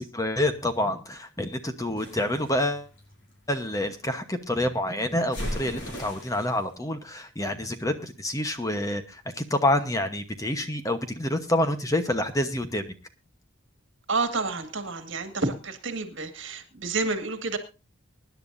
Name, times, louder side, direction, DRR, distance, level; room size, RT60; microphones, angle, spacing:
voice 1, 0.1-2.9 3.5-12.8, left 1 dB, 15° left, 8 dB, 1.0 m, -27 dB
sound 1, 2.0-3.9 5.3-6.6, equal, 60° left, 5.7 m, -37 dB
voice 2, 14.1-17.6, right 3 dB, 65° right, 7 dB, 1.9 m, -29 dB
24.0 x 10.5 x 2.6 m, 0.29 s
head